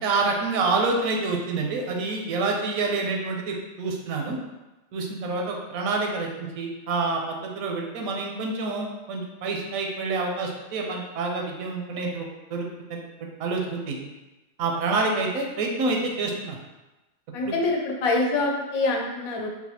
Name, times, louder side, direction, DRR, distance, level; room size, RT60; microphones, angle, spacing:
voice 1, 0.0-4.4 4.9-14.0 14.6-16.6 17.4-17.5, right 3 dB, 85° right, 1 dB, 1.0 m, -27 dB
voice 2, 17.3-19.5, left 2 dB, 85° left, 0 dB, 1.1 m, -25 dB
3.9 x 2.3 x 2.8 m, 1.1 s
omnidirectional pair, 1.5 m